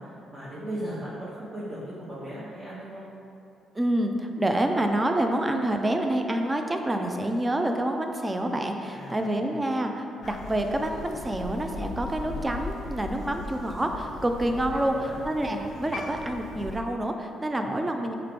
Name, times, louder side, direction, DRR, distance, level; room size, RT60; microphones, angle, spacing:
voice 1, 0.0-3.0 8.9-9.6 12.2-12.4 14.5-15.2 17.5-17.8, right 1 dB, 35° right, -9 dB, 0.8 m, -38 dB
voice 2, 3.7-14.9 15.2-18.1, right 1 dB, 20° right, 4 dB, 0.4 m, -27 dB
Crow, 10.2-16.8, left 3 dB, 65° left, 0.4 m, -39 dB
4.7 x 2.9 x 3.4 m, 2.7 s
cardioid pair, 90°, 0 cm